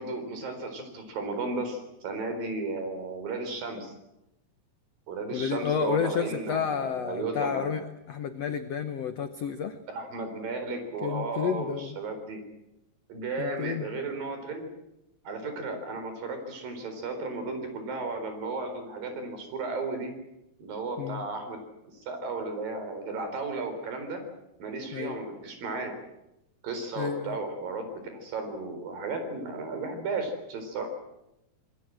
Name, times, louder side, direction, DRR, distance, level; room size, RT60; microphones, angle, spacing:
voice 1, 0.0-3.9 5.1-7.7 9.9-12.4 13.1-14.7 15.2-20.1 20.6-21.6 22.1-24.2 24.6-25.9 26.6-30.9, right 3 dB, 60° right, 7 dB, 5.9 m, -34 dB
voice 2, 5.3-9.8 11.0-12.0 13.4-13.9 21.0-21.2 24.9-25.2 27.0-27.4, left 7 dB, 90° left, 9 dB, 1.4 m, -31 dB
26.0 x 21.0 x 7.7 m, 0.88 s
omnidirectional pair, 4.6 m